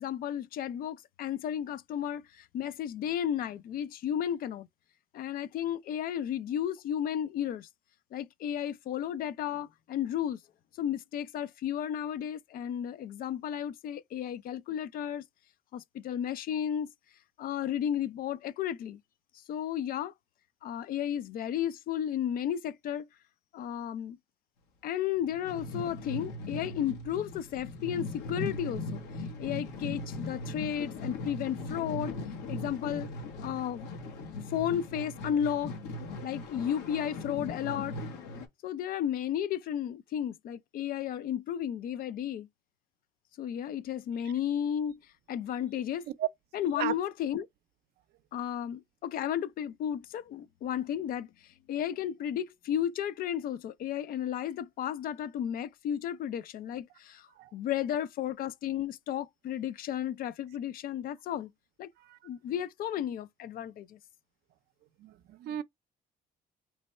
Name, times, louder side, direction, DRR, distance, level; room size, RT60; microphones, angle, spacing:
voice 1, 0.0-4.7 5.1-7.7 8.1-10.4 10.8-15.2 15.7-16.9 17.4-19.0 19.5-20.1 20.6-23.1 23.5-24.2 24.8-29.0 29.4-32.2 32.5-33.1 33.4-33.9 34.5-35.7 36.2-38.0 38.6-42.5 43.4-45.0 45.3-46.1 46.5-47.5 48.3-51.3 51.7-61.5 61.8-61.9 62.2-64.0, left 10 dB, 60° left, 0.4 m, -33 dB
sound 1, 25.2-38.5, left 2 dB, 85° left, 1.2 m, -39 dB
voice 2, 65.0-65.6, right 12 dB, 70° right, 0.5 m, -34 dB
3.2 x 2.2 x 4.2 m
cardioid pair, 110°, 17 cm